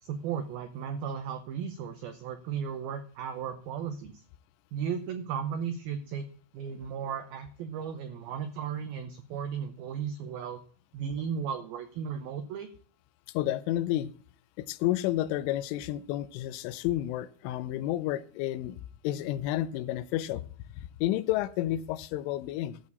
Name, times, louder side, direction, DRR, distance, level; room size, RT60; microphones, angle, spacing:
voice 1, 0.0-4.1 4.7-6.3 6.5-10.6 10.9-12.7, right 7 dB, 85° right, 2.1 m, -35 dB
voice 2, 13.3-14.1 14.6-20.5 20.8-22.8, left 14 dB, 90° left, 3.2 m, -31 dB
13.5 x 4.5 x 8.3 m
omnidirectional pair, 5.5 m